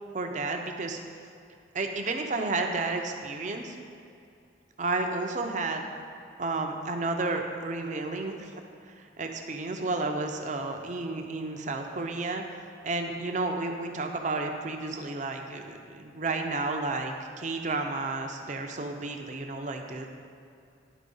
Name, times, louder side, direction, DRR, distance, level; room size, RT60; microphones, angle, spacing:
voice 1, 0.1-1.0 1.7-3.8 4.8-5.9 6.4-12.4 12.8-20.1, right 3 dB, 40° right, 4 dB, 0.7 m, -32 dB
11.0 x 4.2 x 5.4 m, 2.5 s
head